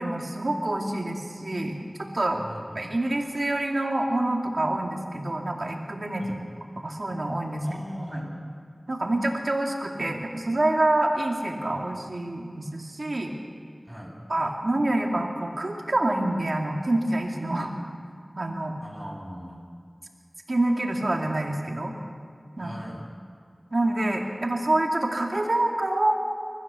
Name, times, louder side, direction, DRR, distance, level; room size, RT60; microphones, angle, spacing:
voice 1, 0.0-1.8 2.1-2.4 2.7-6.3 6.8-7.6 8.9-13.3 14.3-17.7 18.4-18.8 20.5-21.9 22.6-22.7 23.7-26.1, right 1 dB, 75° right, 1 dB, 2.6 m, -26 dB
voice 2, 2.4-2.8 6.2-6.4 7.6-8.4 13.9-14.1 18.8-19.6 22.6-23.0, equal, 10° right, -2 dB, 6.4 m, -37 dB
28.0 x 14.5 x 7.1 m, 2.1 s
wide cardioid pair, 50°, 0 cm